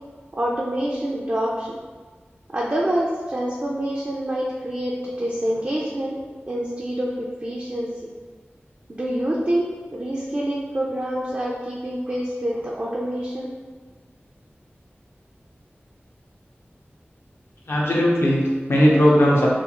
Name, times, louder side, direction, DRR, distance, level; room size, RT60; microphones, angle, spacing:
voice 1, 0.4-1.7 2.5-6.2 6.5-7.9 8.9-9.7 9.9-13.5, right 1 dB, 35° right, -4 dB, 0.3 m, -26 dB
voice 2, 17.7-19.5, equal, 70° left, -4 dB, 0.6 m, -18 dB
2.4 x 2.4 x 2.9 m, 1.4 s
wide cardioid pair, 65°, 4 cm